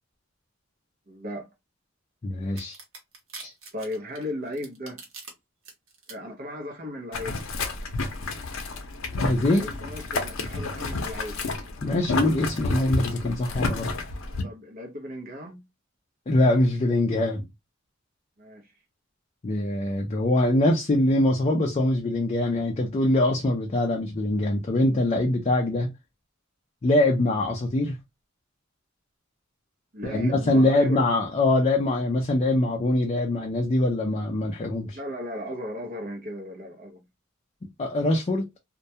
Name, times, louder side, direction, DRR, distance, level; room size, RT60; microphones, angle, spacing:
voice 1, 1.1-1.5 3.7-5.1 6.1-7.4 9.4-11.4 14.4-15.6 18.4-18.7 29.9-31.0 34.9-37.0, left 1 dB, 45° right, 0.6 m, -36 dB
voice 2, 2.2-2.8 3.4-3.5 9.2-9.7 11.8-13.9 16.3-17.4 19.4-25.9 26.8-28.0 30.0-35.0 37.8-38.5, left 1 dB, 30° left, 0.4 m, -23 dB
sound 1, 2.6-5.3 5.6-6.1, right 4 dB, 85° right, 0.8 m, -43 dB
Boiling, 7.1-14.4, left 3 dB, 90° left, 0.6 m, -30 dB
2.2 x 2.1 x 2.6 m
head